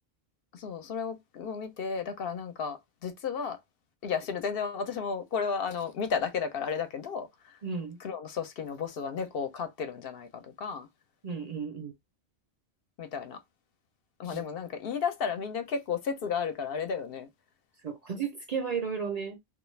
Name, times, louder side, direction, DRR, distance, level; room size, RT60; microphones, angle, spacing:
voice 1, 0.5-3.6 4.0-7.6 8.0-10.9 13.0-13.4 14.2-17.3, left 6 dB, 65° left, 0.8 m, -33 dB
voice 2, 7.6-8.0 11.2-11.9 14.3-14.5 17.8-19.4, right 6 dB, 50° right, 0.5 m, -34 dB
2.3 x 2.3 x 3.1 m
omnidirectional pair, 1.1 m